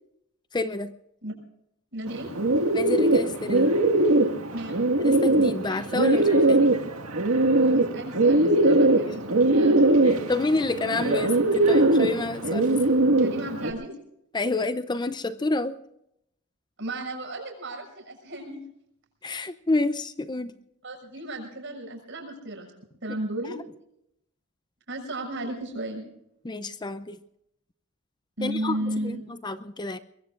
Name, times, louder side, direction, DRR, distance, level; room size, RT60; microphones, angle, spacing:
voice 1, 0.5-0.9 2.7-3.8 5.0-6.6 10.0-12.8 14.3-15.8 19.2-20.6 26.4-27.2 28.4-30.0, left 2 dB, 20° left, 0.6 m, -29 dB
voice 2, 1.9-2.3 4.5-4.8 7.6-10.2 13.2-13.9 16.8-18.6 20.8-22.7 23.0-23.5 24.9-26.1 28.4-29.2, right 1 dB, 60° right, 6.6 m, -34 dB
Bird, 2.1-13.7, right 2 dB, 85° right, 1.9 m, -21 dB
23.0 x 22.5 x 2.5 m
head